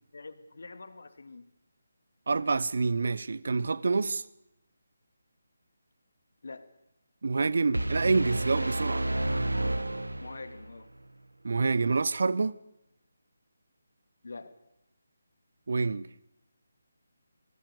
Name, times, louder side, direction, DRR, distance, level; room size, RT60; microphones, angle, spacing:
voice 1, 0.1-1.5 6.4-6.7 10.2-10.9 14.2-14.5, left 3 dB, 65° left, 2.6 m, -45 dB
voice 2, 2.3-4.2 7.2-9.1 11.4-12.6 15.7-16.1, right 4 dB, 60° right, 1.0 m, -27 dB
sound 1, 7.7-10.7, right 1 dB, 90° right, 1.3 m, -30 dB
26.0 x 19.0 x 6.9 m
figure-of-eight pair, 155°, 0 cm